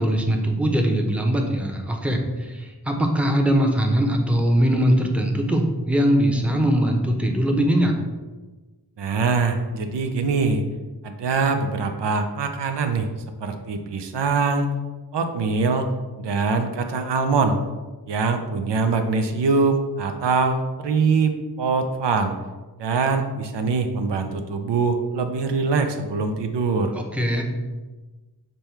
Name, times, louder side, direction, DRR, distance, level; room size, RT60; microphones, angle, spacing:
voice 1, 0.0-8.0 26.9-27.4, equal, 5° right, 2 dB, 0.7 m, -21 dB
voice 2, 9.0-10.6 11.0-13.1 13.4-14.7 15.1-15.9 16.2-17.6 18.1-22.4 22.8-26.9, right 4 dB, 90° right, 6 dB, 0.5 m, -23 dB
5.3 x 2.2 x 4.4 m, 1.2 s
cardioid pair, 45°, 41 cm